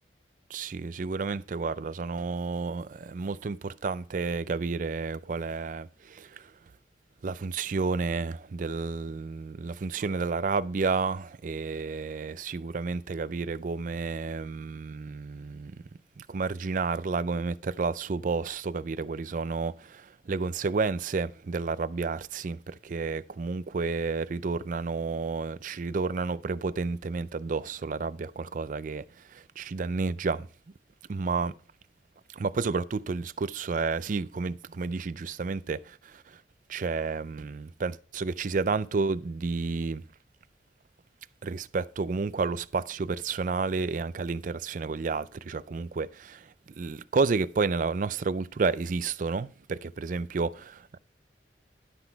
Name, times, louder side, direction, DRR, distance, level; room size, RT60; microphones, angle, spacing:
voice 1, 0.5-6.6 7.2-15.7 16.2-30.5 31.1-31.5 32.3-36.4 36.7-40.0 41.4-51.0, right 4 dB, 45° right, 0.4 m, -31 dB
12.0 x 5.9 x 4.5 m
head